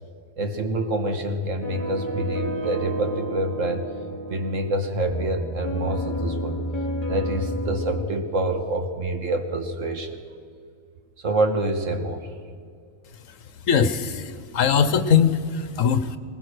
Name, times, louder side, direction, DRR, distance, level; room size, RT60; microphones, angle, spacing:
voice 1, 0.4-3.9 4.3-6.6 7.1-10.2 11.2-12.3, right 2 dB, 65° right, 7 dB, 1.7 m, -26 dB
sound 1, 1.6-8.1, equal, 20° left, 4.6 m, -30 dB
voice 2, 13.6-16.2, left 7 dB, 70° left, 12 dB, 1.4 m, -21 dB
20.5 x 20.5 x 6.5 m, 2.2 s
omnidirectional pair, 1.4 m